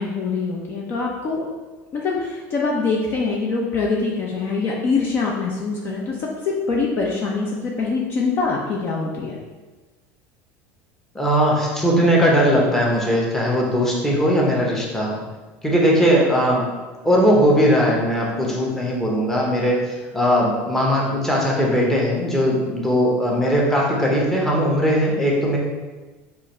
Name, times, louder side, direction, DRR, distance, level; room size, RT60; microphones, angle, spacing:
voice 1, 0.0-1.4 1.9-9.4, left 4 dB, 35° left, -2 dB, 0.6 m, -24 dB
voice 2, 11.1-15.2 15.6-16.7 17.0-19.8 20.1-25.6, equal, 5° left, -4 dB, 0.9 m, -19 dB
4.8 x 2.5 x 4.2 m, 1.2 s
cardioid pair, 145°, 6 cm